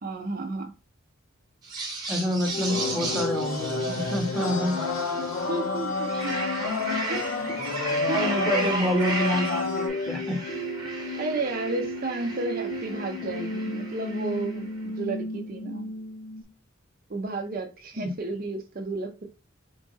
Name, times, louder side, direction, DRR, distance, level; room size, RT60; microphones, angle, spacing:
voice 1, 0.0-0.7 5.5-6.3 7.1-7.3 8.1-8.7 11.2-15.9 17.1-19.2, right 2 dB, 45° right, 0.6 m, -32 dB
sound 1, 1.6-5.5 5.9-14.6, right 3 dB, 20° right, 1.1 m, -36 dB
voice 2, 2.1-4.8 8.1-10.4, equal, ahead, 0.9 m, -27 dB
sound 2, 2.5-16.4, left 2 dB, 40° left, 0.6 m, -34 dB
sound 3, 2.7-9.9, left 3 dB, 85° left, 1.0 m, -31 dB
3.8 x 2.4 x 3.8 m
head